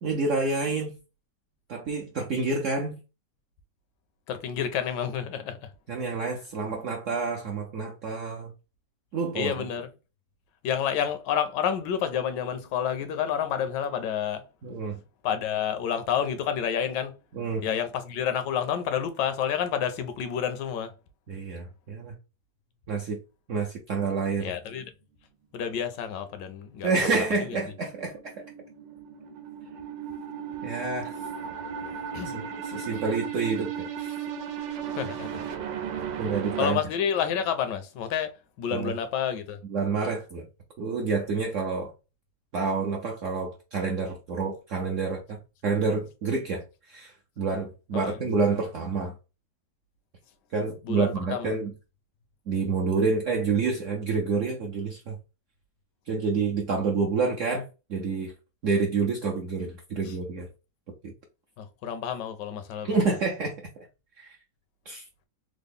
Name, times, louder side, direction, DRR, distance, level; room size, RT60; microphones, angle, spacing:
voice 1, 0.0-1.0 1.7-3.0 5.9-8.5 9.1-9.5 14.6-15.0 17.3-17.7 21.3-22.1 22.9-23.2 23.5-24.5 26.8-28.5 30.6-31.2 32.3-34.2 36.2-36.8 38.7-38.9 39.7-40.5 40.8-41.9 42.5-49.1 50.5-51.7 52.5-55.2 56.1-58.3 58.6-60.5 61.0-61.1 62.9-63.9 64.2-64.4 64.9-65.0, right 4 dB, 70° right, 0.7 m, -28 dB
voice 2, 4.3-5.7 9.3-9.9 10.6-14.5 15.2-17.1 17.6-20.9 24.4-24.9 25.5-26.9 31.8-32.4 35.0-35.4 36.6-39.6 47.9-48.1 50.8-51.5 60.1-60.2 61.6-63.0, left 8 dB, 80° left, 1.2 m, -29 dB
sound 1, 27.7-36.7, right 8 dB, 85° right, 1.3 m, -35 dB
3.7 x 2.0 x 3.4 m
omnidirectional pair, 1.9 m